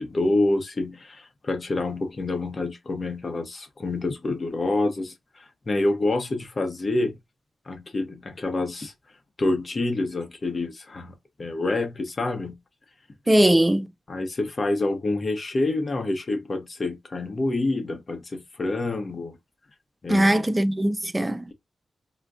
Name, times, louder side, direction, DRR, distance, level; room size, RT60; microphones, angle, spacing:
voice 1, 0.0-7.2 7.7-8.9 9.4-12.6 14.1-19.4 20.0-20.5, left 2 dB, 45° left, 0.8 m, -27 dB
voice 2, 13.3-13.9 20.1-21.5, right 1 dB, 15° right, 0.3 m, -20 dB
2.3 x 2.1 x 3.6 m
cardioid pair, 60°, 0 cm